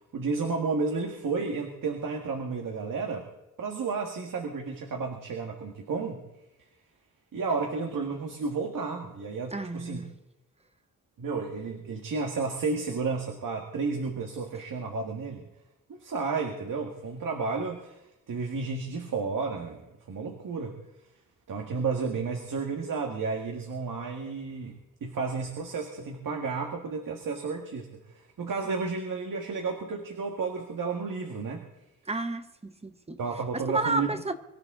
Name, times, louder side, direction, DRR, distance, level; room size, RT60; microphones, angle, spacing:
voice 1, 0.1-3.3 3.6-6.3 7.3-10.0 11.2-15.5 15.9-18.0 18.3-20.8 21.5-28.0 28.4-31.7 33.2-34.2, right 4 dB, 80° right, 1.8 m, -32 dB
voice 2, 9.5-10.1 32.1-33.2 33.5-34.3, right 2 dB, 20° right, 0.8 m, -31 dB
24.0 x 14.5 x 3.8 m
wide cardioid pair, 180°, 32 cm